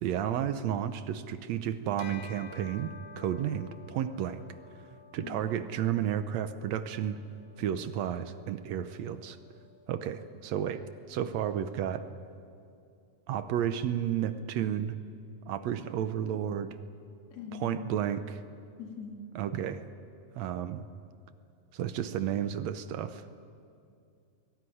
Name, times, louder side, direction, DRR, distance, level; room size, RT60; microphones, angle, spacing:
voice 1, 0.0-4.4 5.1-7.2 7.6-9.4 9.9-12.1 13.3-15.0 15.5-16.8 17.6-18.4 19.4-19.9 20.4-20.8 21.7-23.2, right 10 dB, 70° right, 11 dB, 1.8 m, -32 dB
Bell, 2.0-11.7, left 5 dB, 90° left, 1.1 m, -54 dB
voice 2, 17.3-17.9 18.8-19.2, left 6 dB, 55° left, 1 dB, 3.6 m, -42 dB
21.5 x 18.0 x 9.9 m, 2.4 s
omnidirectional pair, 3.6 m